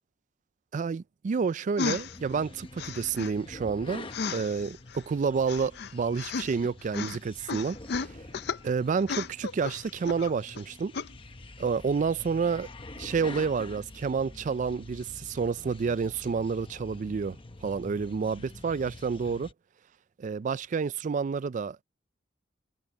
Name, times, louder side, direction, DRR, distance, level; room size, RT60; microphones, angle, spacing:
voice 1, 0.7-8.2 8.6-10.9 11.6-12.7 13.0-17.4 17.6-19.5 20.2-21.8, right 5 dB, 40° right, 0.3 m, -29 dB
sound 1, 1.8-2.2 2.8-3.3 4.1-5.0 5.5-6.7 6.9-7.2 7.5-8.6 9.0-10.6 10.9-11.1, left 5 dB, 55° left, 0.5 m, -34 dB
sound 2, 1.8-19.5, left 2 dB, 25° left, 0.9 m, -46 dB
head